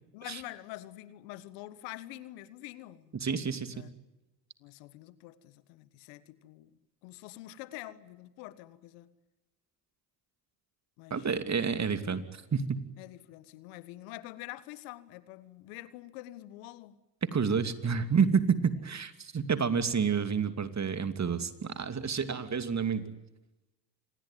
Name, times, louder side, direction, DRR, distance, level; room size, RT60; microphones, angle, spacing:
voice 1, 0.1-3.2 3.6-3.9 4.6-6.7 7.0-9.1 11.0-11.4 13.0-17.0 23.0-23.1, left 16 dB, 80° left, 16 dB, 1.6 m, -46 dB
voice 2, 3.1-3.7 11.1-12.8 17.2-23.1, right 6 dB, 35° right, 10 dB, 2.7 m, -29 dB
26.5 x 21.0 x 9.3 m, 0.99 s
hypercardioid pair, 60°, 48 cm